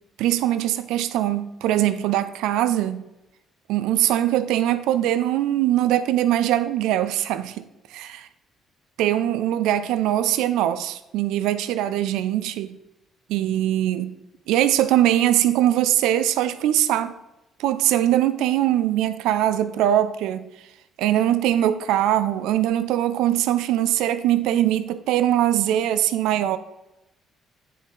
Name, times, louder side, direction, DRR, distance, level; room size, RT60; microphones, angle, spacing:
voice 1, 0.2-3.1 3.7-7.6 7.9-8.3 9.0-12.8 13.3-14.1 14.5-17.1 17.6-20.5 21.0-26.6, right 12 dB, 80° right, 0.4 m, -22 dB
9.1 x 4.0 x 3.7 m
supercardioid pair, 65°, 0 cm